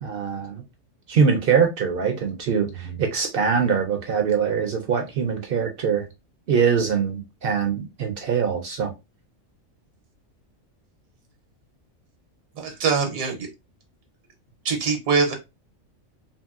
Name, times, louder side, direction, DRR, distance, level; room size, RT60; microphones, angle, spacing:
voice 1, 0.0-0.6 1.1-6.1 6.5-8.9, right 6 dB, 65° right, 0.6 m, -23 dB
voice 2, 12.6-13.5 14.6-15.3, right 5 dB, 85° right, 1.2 m, -23 dB
2.8 x 2.7 x 2.3 m
omnidirectional pair, 1.4 m